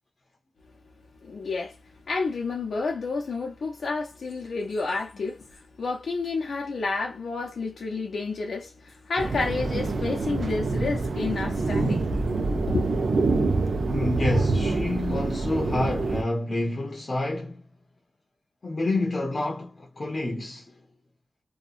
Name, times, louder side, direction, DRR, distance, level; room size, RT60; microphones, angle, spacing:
voice 1, 1.2-1.8 2.1-12.1 12.5-12.9, left 3 dB, 85° left, 0.6 m, -30 dB
sound 1, 9.2-16.2, right 3 dB, 70° right, 0.5 m, -26 dB
voice 2, 13.9-17.7 18.6-20.8, left 2 dB, 40° left, 0.7 m, -28 dB
2.8 x 2.2 x 2.3 m
wide cardioid pair, 135°, 0 cm